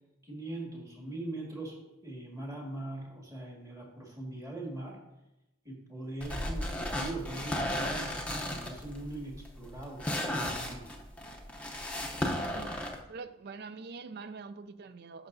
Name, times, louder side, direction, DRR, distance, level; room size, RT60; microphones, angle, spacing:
voice 1, 0.2-5.0 5.7-10.9, right 2 dB, 15° right, -2 dB, 1.8 m, -41 dB
sound 1, 6.2-13.0, left 1 dB, 5° left, 0.7 m, -35 dB
voice 2, 12.3-12.8 13.1-15.3, right 4 dB, 50° right, 13 dB, 0.4 m, -45 dB
12.5 x 5.8 x 2.6 m, 0.92 s
head